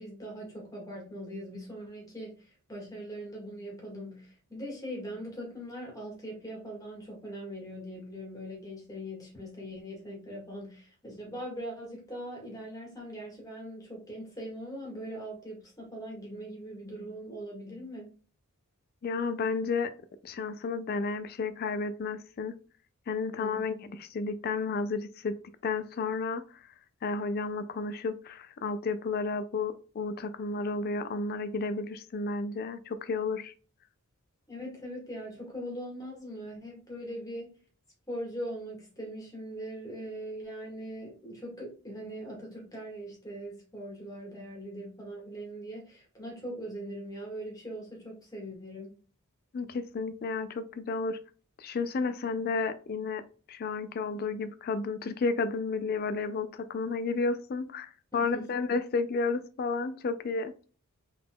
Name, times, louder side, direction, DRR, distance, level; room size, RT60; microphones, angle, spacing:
voice 1, 0.0-18.1 23.4-23.6 34.5-37.5 38.1-48.9 58.1-58.5, equal, 15° left, 1.5 m, -41 dB
voice 2, 19.0-19.9 20.2-22.5 23.1-25.4 25.6-26.6 27.0-33.5 49.5-51.2 51.6-53.2 53.5-60.5, left 4 dB, 45° left, 0.3 m, -32 dB
4.0 x 3.6 x 2.2 m
head